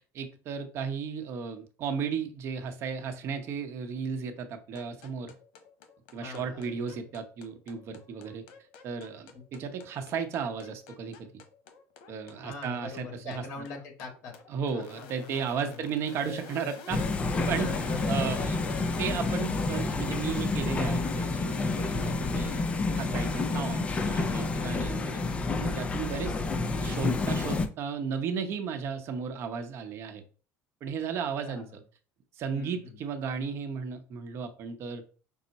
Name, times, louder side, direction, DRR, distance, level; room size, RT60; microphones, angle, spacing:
voice 1, 0.1-5.3 6.1-8.4 8.8-11.3 12.1-13.5 14.5-17.0 17.5-17.7 18.1-18.6 19.0-22.7 22.9-25.2 25.6-26.4 26.8-30.2 30.8-31.8 32.4-35.0, right 6 dB, 45° right, 6 dB, 0.8 m, -34 dB
sound 1, 4.7-24.5, left 5 dB, 85° left, 0.9 m, -47 dB
voice 2, 6.2-7.0 12.4-14.3 14.7-15.8 17.5-18.4 31.4-31.8 32.5-33.0, left 4 dB, 55° left, 2 dB, 1.5 m, -42 dB
sound 2, 16.9-27.7, left 3 dB, 20° left, 0.4 m, -29 dB
5.4 x 2.0 x 4.0 m, 0.38 s
cardioid pair, 135°, 6 cm